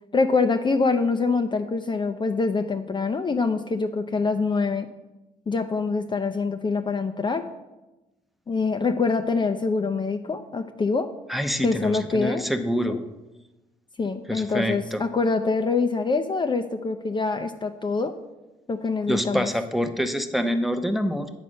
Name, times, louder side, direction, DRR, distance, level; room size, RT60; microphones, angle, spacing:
voice 1, 0.1-4.9 5.5-7.5 8.5-11.1 11.6-12.5 12.8-13.0 14.0-18.2 18.7-19.5, left 4 dB, 30° left, 6 dB, 0.5 m, -25 dB
voice 2, 11.3-13.0 14.3-15.0 19.1-21.3, equal, ahead, 7 dB, 0.7 m, -26 dB
8.7 x 4.1 x 6.3 m, 1.0 s
supercardioid pair, 70°, 16 cm